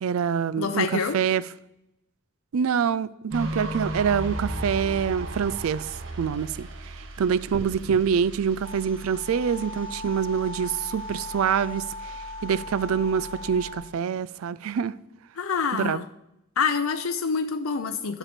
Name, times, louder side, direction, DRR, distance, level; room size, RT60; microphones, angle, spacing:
voice 1, 0.0-1.4 2.5-5.9 6.2-6.7 7.2-11.9 12.4-14.9 15.7-16.0, right 7 dB, 85° right, 0.4 m, -25 dB
voice 2, 0.6-1.2 15.4-16.1 16.6-18.2, left 5 dB, 85° left, 0.6 m, -26 dB
sound 1, 3.3-13.7, right 1 dB, 65° right, 1.3 m, -37 dB
sound 2, 7.5-8.0, equal, 20° right, 1.4 m, -37 dB
sound 3, 8.6-13.8, left 2 dB, 25° left, 1.2 m, -39 dB
11.5 x 6.7 x 4.4 m
head